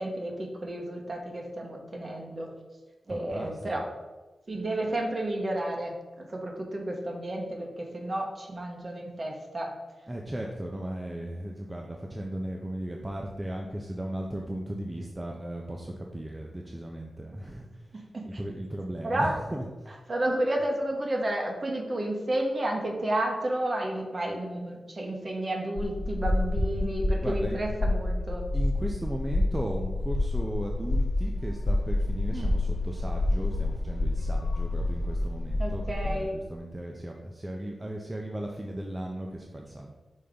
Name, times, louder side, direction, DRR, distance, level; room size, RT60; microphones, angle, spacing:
voice 1, 0.0-2.5 3.1-3.8 4.5-9.7 17.9-18.4 19.0-19.3 20.1-28.4 32.3-32.6 35.6-36.4, right 1 dB, 35° right, 1 dB, 1.0 m, -31 dB
voice 2, 3.1-3.5 10.1-19.6 27.2-27.6 28.5-39.9, right 1 dB, 15° right, 0 dB, 0.4 m, -36 dB
sound 1, 25.8-36.2, left 2 dB, 85° left, 1.1 m, -28 dB
5.5 x 3.4 x 5.0 m, 1.2 s
wide cardioid pair, 150°, 0 cm